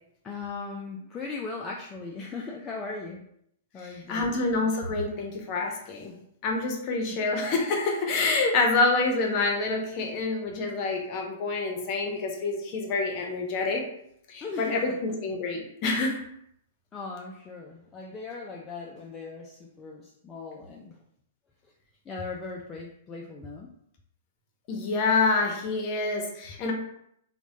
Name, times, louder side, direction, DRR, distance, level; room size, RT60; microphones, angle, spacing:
voice 1, 0.2-3.2 3.7-4.4 7.1-7.2 14.4-15.1 16.9-21.0 22.1-23.7, left 4 dB, 20° left, -1 dB, 0.3 m, -38 dB
voice 2, 3.8-6.1 6.4-13.8 14.3-16.2 24.7-26.7, left 3 dB, 40° left, 1 dB, 0.7 m, -27 dB
2.9 x 2.1 x 2.7 m, 0.73 s
hypercardioid pair, 115°, 0 cm